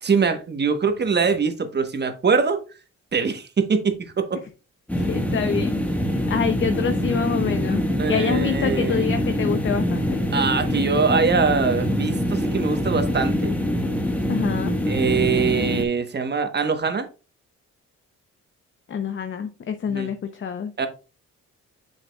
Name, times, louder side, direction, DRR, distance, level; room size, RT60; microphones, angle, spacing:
voice 1, 0.0-2.6 3.1-4.4 8.0-9.1 10.3-13.5 14.9-17.1 19.9-20.1 20.8-20.9, right 5 dB, 35° right, 1.2 m, -23 dB
voice 2, 4.9-7.8 8.1-10.2 14.3-14.8 18.9-20.7, left 6 dB, 40° left, 0.8 m, -26 dB
sound 1, 4.9-15.8, left 1 dB, 5° left, 1.4 m, -24 dB
7.1 x 6.6 x 2.3 m
cardioid pair, 90°, 30 cm